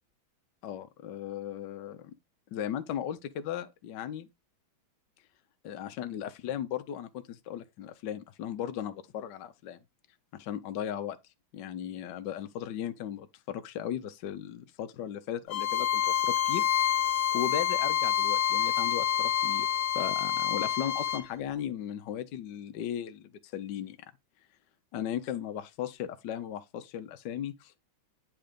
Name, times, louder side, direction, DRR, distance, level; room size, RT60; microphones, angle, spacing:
voice 1, 0.6-2.1 2.5-4.3 5.6-9.8 10.3-11.2 11.5-16.7 17.3-19.7 19.9-24.0 24.9-27.8, left 10 dB, 65° left, 1.2 m, -36 dB
Bowed string instrument, 15.5-21.2, left 10 dB, 80° left, 1.8 m, -27 dB
8.9 x 3.5 x 5.0 m
omnidirectional pair, 2.3 m